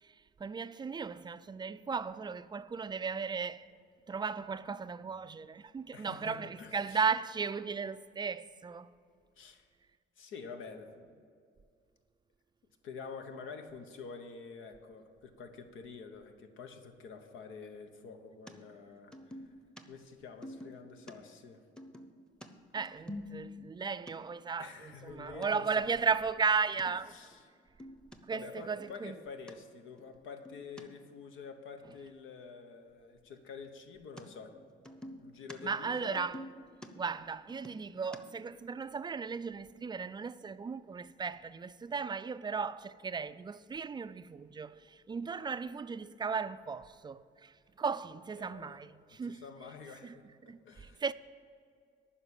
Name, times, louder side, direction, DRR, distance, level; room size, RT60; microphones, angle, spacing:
voice 1, 0.4-3.6 4.1-8.9 22.7-27.1 28.3-29.2 35.6-36.4 36.9-49.4 50.0-50.2 50.4-51.1, right 5 dB, 20° right, 0.3 m, -36 dB
voice 2, 5.9-7.0 9.4-9.7 10.2-11.2 12.8-19.5 19.9-21.6 24.6-25.9 27.1-27.5 28.3-34.5 35.2-36.3 48.4-48.8 49.1-51.0, left 5 dB, 80° left, 1.0 m, -48 dB
sound 1, 18.5-18.6 19.1-19.8 20.4-21.2 21.8-23.8 24.1-24.2 24.6-24.7 24.9-25.5 25.9-26.2 26.8-26.9 27.3-27.4 27.6-28.2 28.6-29.0 29.5-29.6 30.0-30.8 34.2-34.3 34.5-35.6 35.8-38.2, left 1 dB, 5° left, 0.8 m, -47 dB
9.6 x 5.9 x 8.2 m
cardioid pair, 90°, 20 cm